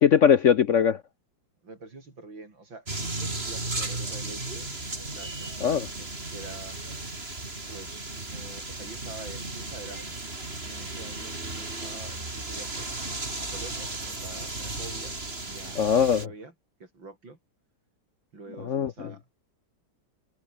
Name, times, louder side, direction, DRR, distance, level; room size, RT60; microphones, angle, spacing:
voice 1, 0.0-1.0 5.6-5.8 15.7-16.3 18.7-18.9, left 8 dB, 60° left, 0.8 m, -20 dB
voice 2, 1.6-4.8 5.1-6.8 7.7-10.3 10.6-12.9 13.4-15.2 15.4-16.5 16.8-17.4 18.3-19.3, right 3 dB, 85° right, 6.0 m, -46 dB
sound 1, 2.9-16.3, right 2 dB, 30° right, 3.9 m, -35 dB
omnidirectional pair, 2.0 m